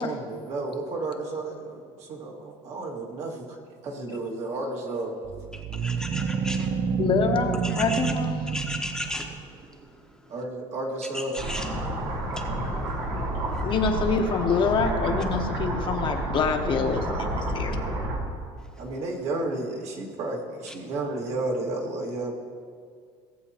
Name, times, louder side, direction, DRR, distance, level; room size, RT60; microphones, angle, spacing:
voice 1, 0.0-3.6 3.8-5.3 10.3-11.4 18.8-22.3, right 2 dB, 60° right, -2 dB, 2.0 m, -32 dB
sound 1, 5.2-9.6, right 6 dB, 35° right, 0.5 m, -29 dB
voice 2, 5.8-6.7 7.9-8.0 8.5-9.3 11.1-11.7, left 1 dB, 5° left, 1 dB, 1.0 m, -34 dB
voice 3, 7.0-8.4 13.6-17.8, left 5 dB, 40° left, 4 dB, 1.0 m, -26 dB
sound 2, 11.4-18.2, right 1 dB, 90° right, 2.1 m, -29 dB
18.0 x 7.6 x 2.9 m, 2.1 s
cardioid pair, 125°, 13 cm